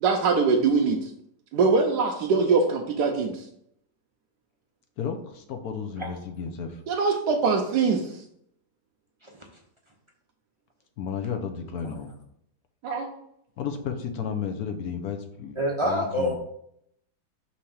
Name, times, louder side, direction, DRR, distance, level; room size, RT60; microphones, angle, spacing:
voice 1, 0.0-1.1 1.5-3.4 6.9-8.2 12.8-13.1, right 4 dB, 75° right, 1 dB, 1.2 m, -23 dB
voice 2, 5.0-6.8 11.0-12.1 13.6-16.3, left 7 dB, 65° left, 6 dB, 1.1 m, -33 dB
voice 3, 15.6-16.3, equal, 30° right, -1 dB, 0.5 m, -26 dB
5.6 x 3.4 x 5.5 m, 0.72 s
omnidirectional pair, 1.9 m